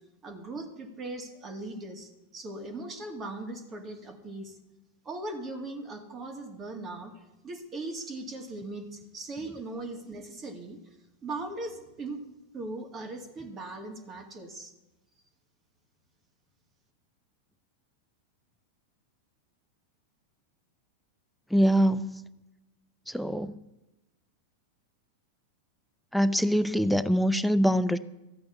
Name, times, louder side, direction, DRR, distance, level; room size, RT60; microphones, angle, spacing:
voice 1, 0.2-4.6 5.0-7.1 7.4-10.8 11.2-12.2 12.5-14.7, right 2 dB, 25° right, 4 dB, 2.3 m, -39 dB
voice 2, 21.5-22.2 23.1-23.6 26.1-28.0, equal, ahead, 13 dB, 0.6 m, -24 dB
13.5 x 8.7 x 7.2 m, 0.97 s
figure-of-eight pair, 90°, 0 cm